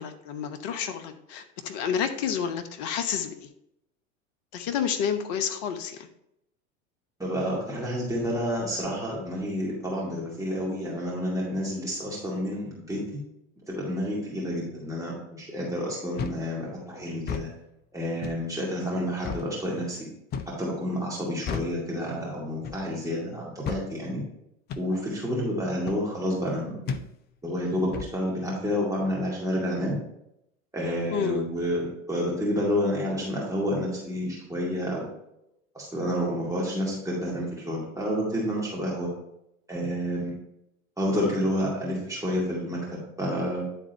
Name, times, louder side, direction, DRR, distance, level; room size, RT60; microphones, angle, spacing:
voice 1, 0.0-3.5 4.5-6.1 31.1-31.4, left 7 dB, 45° left, 8 dB, 0.9 m, -30 dB
voice 2, 7.2-13.0 13.7-17.5 17.9-20.1 20.6-24.2 24.8-26.9 27.4-30.0 30.7-35.1 35.7-39.1 39.7-40.3 41.0-43.6, equal, 10° right, -5 dB, 2.2 m, -29 dB
sound 1, 16.2-16.5 17.2-17.5 18.2-18.5 19.2-19.5 20.3-20.6 21.5-21.8 22.6-22.9 23.7-23.9 24.7-24.9 25.9-26.1 26.9-27.1 27.9-28.2, left 6 dB, 25° left, 0.5 m, -33 dB
10.0 x 3.7 x 4.3 m, 0.79 s
figure-of-eight pair, 80°, 41 cm